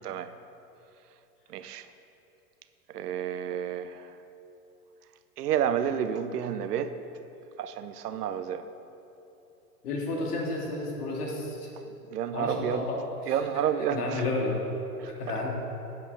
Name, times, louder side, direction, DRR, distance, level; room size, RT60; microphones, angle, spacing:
voice 1, 1.5-1.9 2.9-4.1 5.4-6.9 7.6-8.6 12.1-12.9 13.3-14.2 15.0-15.1, right 9 dB, 75° right, 11 dB, 0.7 m, -30 dB
voice 2, 9.8-11.7 12.3-13.3 13.9-14.6 15.1-15.5, left 2 dB, 70° left, -2 dB, 2.4 m, -31 dB
9.3 x 8.1 x 4.6 m, 3.0 s
hypercardioid pair, 115°, 47 cm